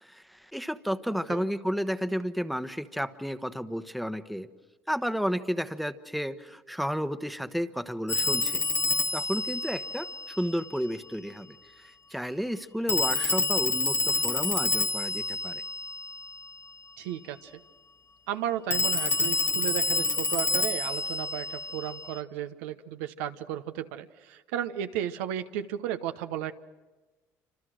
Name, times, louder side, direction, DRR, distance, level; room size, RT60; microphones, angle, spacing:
voice 1, 0.0-4.5 4.9-8.6 9.1-15.6, equal, ahead, 11 dB, 1.1 m, -32 dB
Telephone, 8.1-10.7 12.9-16.5 18.7-22.2, left 3 dB, 30° left, 0.9 m, -28 dB
voice 2, 17.0-17.5 18.3-26.5, right 11 dB, 85° right, 8 dB, 0.9 m, -34 dB
28.0 x 26.0 x 6.4 m, 1.2 s
supercardioid pair, 70°, 8 cm